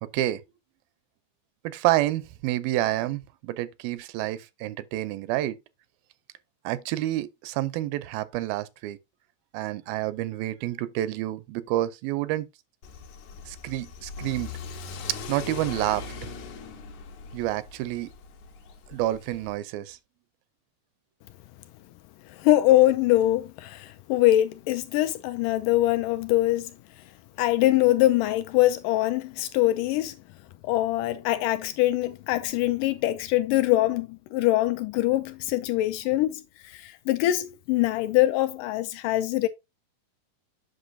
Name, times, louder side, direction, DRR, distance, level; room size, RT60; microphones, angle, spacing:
voice 1, 0.0-0.4 1.6-5.6 6.6-9.0 9.5-12.5 13.5-14.5 15.3-16.3 17.3-18.1 18.9-20.0, right 15 dB, 90° right, 2.4 m, -29 dB
Car / Accelerating revving vroom, 12.8-19.5, left 4 dB, 65° left, 2.2 m, -40 dB
voice 2, 22.3-26.7 27.4-30.1 30.6-39.5, left 15 dB, 80° left, 2.0 m, -23 dB
8.2 x 6.0 x 2.6 m
omnidirectional pair, 4.1 m